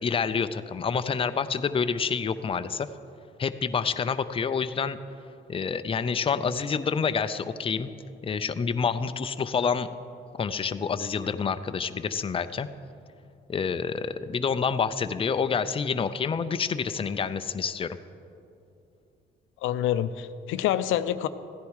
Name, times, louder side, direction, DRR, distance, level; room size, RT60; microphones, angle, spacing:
voice 1, 0.0-2.9 3.4-5.0 5.5-7.9 8.2-9.9 10.4-12.7 13.5-18.0, left 6 dB, 30° left, 11 dB, 0.5 m, -28 dB
voice 2, 19.6-21.3, left 11 dB, 85° left, 12 dB, 0.5 m, -26 dB
15.0 x 10.5 x 4.8 m, 2.6 s
cardioid pair, 90°, 20 cm